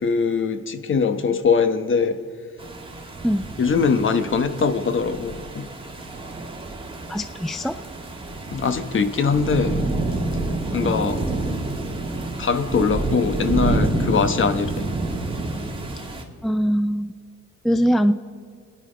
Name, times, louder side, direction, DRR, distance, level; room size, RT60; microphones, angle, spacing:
voice 1, 0.0-2.2 3.6-5.7 8.5-9.8 10.7-11.2 12.4-14.9, left 5 dB, 40° left, 1.1 m, -22 dB
sound 1, 2.6-16.2, right 2 dB, 15° right, 2.2 m, -28 dB
voice 2, 7.1-7.8 10.8-11.0 16.4-17.1 17.6-18.1, equal, ahead, 0.4 m, -21 dB
26.5 x 10.0 x 5.1 m
cardioid pair, 90°, 30 cm